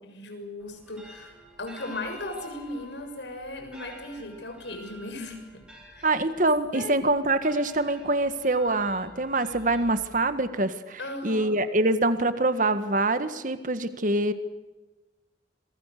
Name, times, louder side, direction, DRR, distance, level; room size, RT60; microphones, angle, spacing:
voice 1, 0.0-5.6 6.0-6.2 6.7-7.1 11.0-11.5, left 2 dB, 85° left, 6 dB, 6.6 m, -37 dB
sound 1, 0.6-10.5, left 1 dB, 5° right, 7.8 m, -49 dB
voice 2, 6.0-14.3, right 2 dB, 45° right, 10 dB, 1.7 m, -25 dB
27.0 x 24.0 x 6.8 m, 1.1 s
head